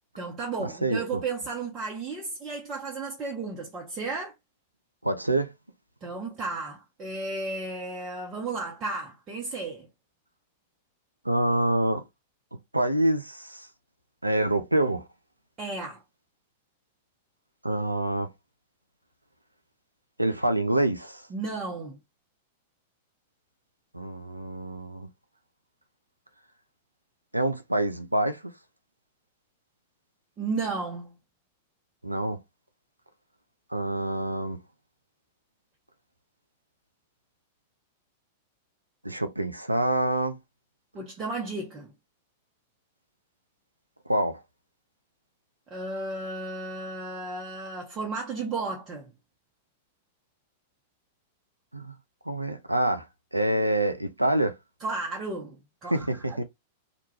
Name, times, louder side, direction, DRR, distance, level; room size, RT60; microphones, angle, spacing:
voice 1, 0.2-4.3 6.0-9.9 15.6-16.0 21.3-22.0 30.4-31.1 40.9-41.9 45.7-49.1 54.8-56.4, right 3 dB, 25° right, 0.6 m, -34 dB
voice 2, 0.8-1.2 5.0-5.5 11.2-12.0 12.7-13.7 14.2-15.1 17.6-18.3 20.2-21.3 23.9-25.1 27.3-28.5 32.0-32.4 33.7-34.6 39.0-40.4 44.1-44.4 51.7-52.0 52.3-53.1 53.3-54.6 55.9-56.4, right 1 dB, 85° right, 0.3 m, -26 dB
2.3 x 2.1 x 3.0 m
figure-of-eight pair, 95°, 0 cm